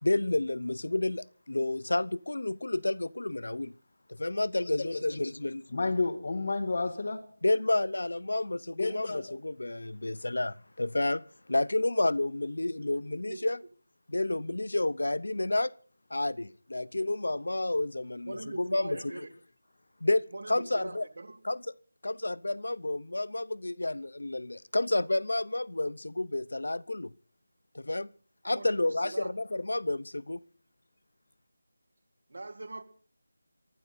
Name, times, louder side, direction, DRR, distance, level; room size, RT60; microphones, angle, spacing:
voice 1, 0.0-3.7 4.1-5.6 7.4-11.2 11.5-13.6 14.1-15.7 16.1-19.2 20.0-21.1 21.4-21.6 22.0-27.1 27.7-28.1 28.4-30.4, left 2 dB, 80° left, 0.7 m, -30 dB
voice 2, 4.6-5.0 5.7-7.3 8.8-9.3, left 3 dB, 35° left, 1.8 m, -31 dB
voice 3, 18.2-19.3 20.3-21.4 28.5-29.3 32.3-32.8, right 2 dB, 50° right, 2.0 m, -42 dB
23.5 x 13.0 x 4.2 m
figure-of-eight pair, 180°, 0 cm